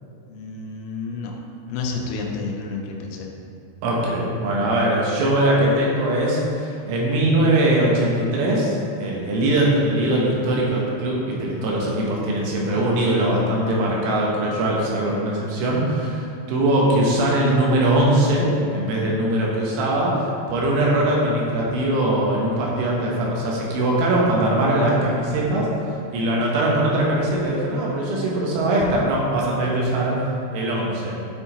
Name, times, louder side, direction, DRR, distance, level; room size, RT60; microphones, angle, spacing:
voice 1, 0.3-1.4 1.7-3.3, left 4 dB, 90° left, 0 dB, 3.1 m, -30 dB
voice 2, 3.8-25.7 26.1-30.2 30.5-31.2, right 1 dB, 80° right, -3 dB, 3.6 m, -21 dB
8.9 x 4.6 x 4.3 m, 2.6 s
omnidirectional pair, 5.5 m